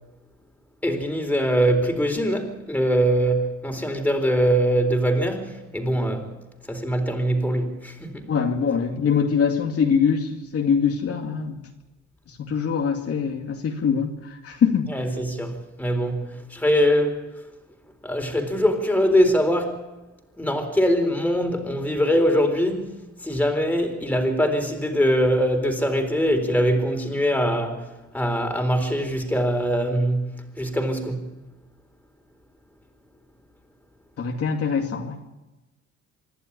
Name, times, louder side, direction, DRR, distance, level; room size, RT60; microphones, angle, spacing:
voice 1, 0.8-6.3 6.6-8.3 14.9-17.2 18.0-19.9 20.4-27.9 28.1-31.3, equal, 5° left, 3.9 m, -23 dB
voice 2, 8.3-11.7 12.3-14.9 34.2-35.2, left 6 dB, 50° left, 2.4 m, -23 dB
25.5 x 11.5 x 9.9 m
cardioid pair, 110°, 30 cm